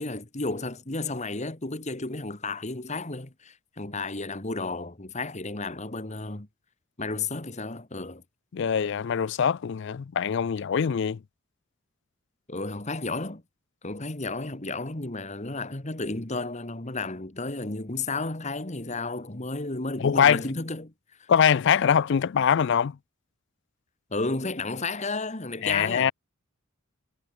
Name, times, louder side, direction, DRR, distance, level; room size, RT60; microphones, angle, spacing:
voice 1, 0.0-6.5 7.0-8.2 12.5-13.4 13.8-20.9 21.2-21.3 24.1-26.1, left 3 dB, 35° left, 1.8 m, -32 dB
voice 2, 8.5-11.2 20.0-20.4 21.3-23.0 25.6-26.1, left 7 dB, 55° left, 0.4 m, -23 dB
head